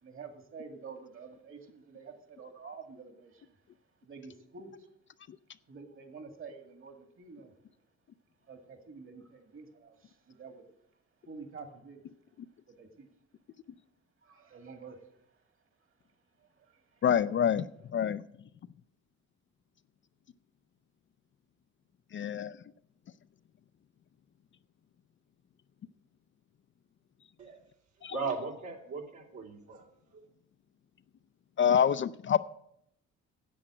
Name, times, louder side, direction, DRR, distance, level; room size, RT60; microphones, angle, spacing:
voice 1, 0.0-3.5 4.0-4.9 5.7-7.5 8.5-10.6 11.3-12.0 12.7-13.1 14.2-15.0 16.4-17.0, right 5 dB, 45° right, 2.2 m, -49 dB
voice 2, 17.0-18.2 22.1-22.6 28.0-28.1 31.6-32.4, left 8 dB, 40° left, 0.4 m, -26 dB
voice 3, 28.1-29.9 30.1-30.2, right 4 dB, 65° right, 2.8 m, -37 dB
10.0 x 7.8 x 7.6 m
cardioid pair, 90°, 30 cm